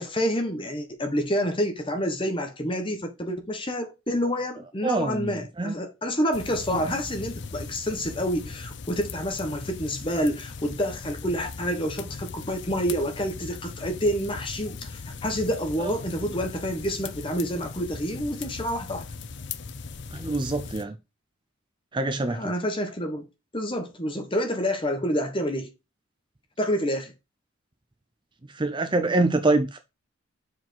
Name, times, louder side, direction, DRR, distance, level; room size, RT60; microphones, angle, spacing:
voice 1, 0.0-19.1 22.2-23.3 23.5-25.7 26.6-27.1, equal, 25° left, 1.2 m, -28 dB
voice 2, 4.8-5.3 5.6-5.7 6.7-6.9 20.1-20.9 21.9-22.4 28.6-29.8, right 2 dB, 20° right, 0.5 m, -25 dB
sound 1, 6.3-20.8, left 4 dB, 55° left, 0.6 m, -39 dB
5.8 x 5.0 x 4.6 m
head